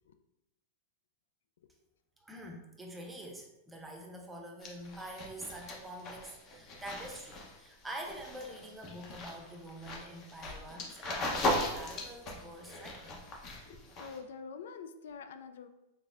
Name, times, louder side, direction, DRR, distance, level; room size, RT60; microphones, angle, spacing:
voice 1, 2.2-13.2, right 1 dB, 10° right, 1 dB, 0.7 m, -46 dB
sound 1, 4.6-14.2, left 1 dB, 35° left, 0.9 m, -38 dB
voice 2, 13.6-15.7, left 5 dB, 80° left, 9 dB, 0.3 m, -46 dB
3.9 x 3.4 x 2.5 m, 0.92 s
hypercardioid pair, 130°, 0 cm